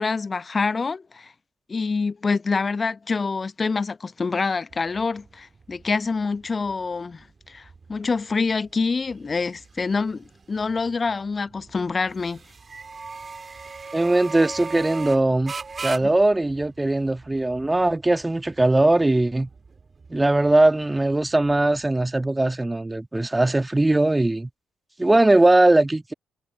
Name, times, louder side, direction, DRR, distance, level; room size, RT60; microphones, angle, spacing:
voice 1, 0.0-1.3 1.7-12.4 16.0-16.1, left 4 dB, 30° left, 0.8 m, -26 dB
sound 1, 4.7-21.9, right 4 dB, 35° right, 2.6 m, -40 dB
voice 2, 13.9-15.5 15.8-19.5 20.1-24.5 25.0-26.1, right 2 dB, 15° right, 1.9 m, -20 dB
figure-of-eight pair, 45°, 0 cm